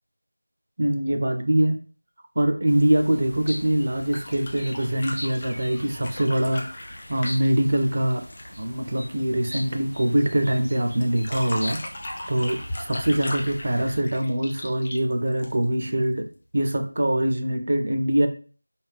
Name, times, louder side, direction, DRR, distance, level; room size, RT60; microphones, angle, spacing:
voice 1, 0.8-1.8 2.4-6.7 7.1-8.2 8.6-11.8 12.3-16.3 16.5-18.3, right 1 dB, 35° right, 6 dB, 0.4 m, -23 dB
sound 1, 2.7-14.0, equal, 85° left, 0.6 m, -41 dB
sound 2, 4.0-8.6 11.0-15.9 17.3-17.4, left 1 dB, 20° left, 0.4 m, -37 dB
3.3 x 2.2 x 3.2 m, 0.39 s
figure-of-eight pair, 175°, 0 cm